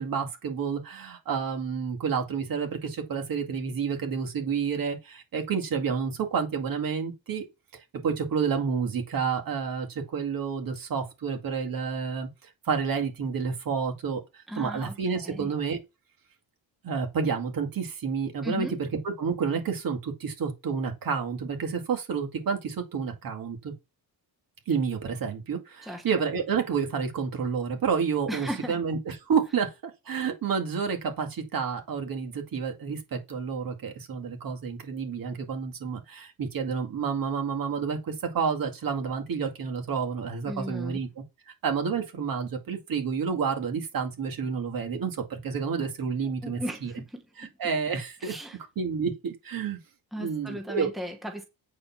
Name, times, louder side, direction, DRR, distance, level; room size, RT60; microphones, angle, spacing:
voice 1, 0.0-7.5 8.0-12.3 12.6-14.2 14.6-15.8 16.8-23.7 24.7-41.1 41.5-46.9 47.4-48.3 48.8-49.8 50.2-50.9, right 6 dB, 60° right, 2.3 m, -29 dB
voice 2, 14.5-15.0 15.2-15.5 18.4-18.8 25.8-26.0 28.3-28.8 40.4-41.0 46.2-47.5 48.2-48.6 50.1-51.4, equal, ahead, 1.2 m, -36 dB
8.5 x 4.5 x 5.8 m
wide cardioid pair, 170°, 39 cm